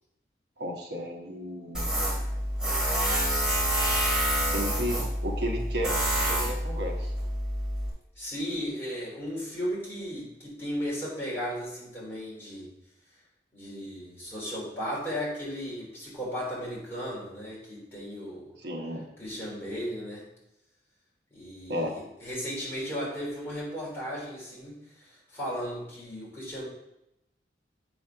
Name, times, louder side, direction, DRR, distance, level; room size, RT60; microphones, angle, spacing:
voice 1, 0.6-1.9 4.4-7.1 18.6-19.0 21.7-21.9, equal, 75° right, 1 dB, 1.2 m, -33 dB
Tools, 1.7-7.9, equal, 5° right, 3.1 m, -27 dB
voice 2, 8.2-12.7 13.5-18.5 19.2-20.3 21.3-26.7, equal, 15° left, -7 dB, 3.3 m, -35 dB
8.0 x 4.2 x 5.7 m, 0.86 s
head